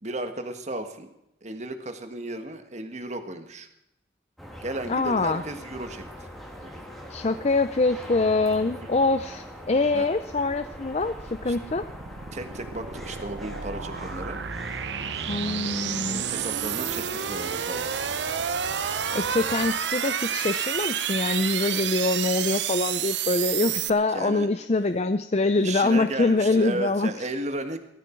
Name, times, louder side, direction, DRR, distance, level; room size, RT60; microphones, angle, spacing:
voice 1, 0.0-1.1 1.4-3.7 4.6-6.3 6.6-6.8 8.6-8.9 9.9-10.1 11.5-11.6 12.3-14.4 16.1-17.9 24.1-24.5 25.6-27.8, right 2 dB, 40° right, 7 dB, 1.6 m, -34 dB
sound 1, 4.4-19.8, equal, ahead, 2.5 m, -42 dB
voice 2, 4.9-5.4 7.1-11.9 15.3-16.2 19.1-27.1, left 3 dB, 35° left, 10 dB, 0.5 m, -24 dB
sound 2, 10.3-23.9, right 8 dB, 80° right, 0.8 m, -30 dB
17.5 x 14.0 x 4.5 m, 0.85 s
head